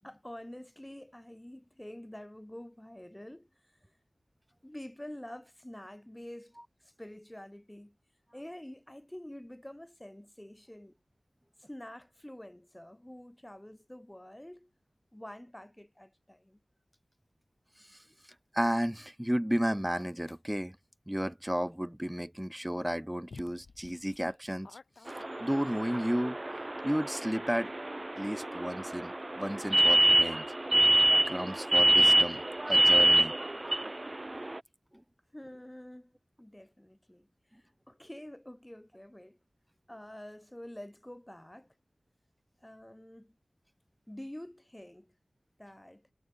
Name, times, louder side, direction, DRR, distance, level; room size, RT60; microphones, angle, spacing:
voice 1, 0.0-3.9 4.6-8.0 8.3-11.0 11.6-14.7 15.1-16.6 35.3-36.1 36.4-39.4 39.9-41.7 42.6-43.3 44.1-45.1 45.6-46.1, left 1 dB, 10° left, 7.4 m, -47 dB
voice 2, 18.5-20.8 21.1-24.7 25.4-26.4 26.8-27.7 28.2-30.4 31.3-33.3, equal, 5° right, 0.7 m, -32 dB
sound 1, 20.0-20.4 22.6-22.7 23.3-25.8, left 4 dB, 80° left, 5.9 m, -53 dB
sound 2, 25.1-34.6, right 2 dB, 30° right, 0.4 m, -26 dB
wide cardioid pair, 65°, 0 cm